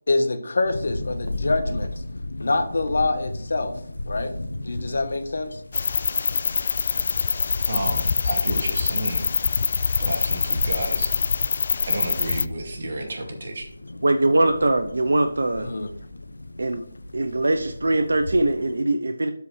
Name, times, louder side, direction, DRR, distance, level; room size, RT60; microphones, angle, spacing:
voice 1, 0.1-1.9 2.4-3.7 4.1-4.3 4.6-5.6 15.6-15.9, left 2 dB, 65° left, 8 dB, 1.1 m, -25 dB
sound 1, 0.6-18.8, left 1 dB, 90° left, 0.7 m, -36 dB
sound 2, 5.7-12.4, left 5 dB, 45° left, 0.3 m, -24 dB
voice 2, 7.7-9.3 10.0-11.2 11.8-13.7, right 1 dB, 55° right, 2 dB, 2.3 m, -31 dB
voice 3, 14.0-15.7 16.6-16.8 17.1-19.3, right 2 dB, 75° right, 7 dB, 0.6 m, -21 dB
12.0 x 5.0 x 3.2 m, 0.66 s
figure-of-eight pair, 160°, 0 cm